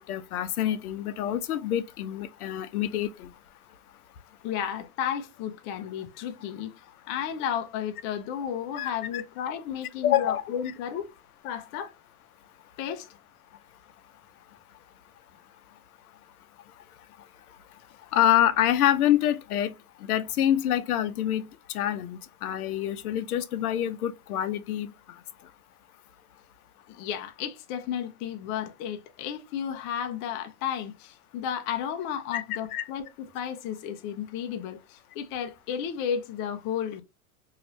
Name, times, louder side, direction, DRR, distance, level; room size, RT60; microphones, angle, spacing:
voice 1, 0.1-3.3 8.8-9.2 10.0-10.4 18.1-19.7 20.1-24.9 32.3-32.4 32.7-32.9, left 11 dB, 90° left, 0.6 m, -26 dB
voice 2, 4.4-6.7 7.1-11.1 11.4-11.9 12.8-13.1 26.9-37.0, left 8 dB, 30° left, 0.4 m, -33 dB
2.6 x 2.4 x 2.9 m
hypercardioid pair, 125°, 43 cm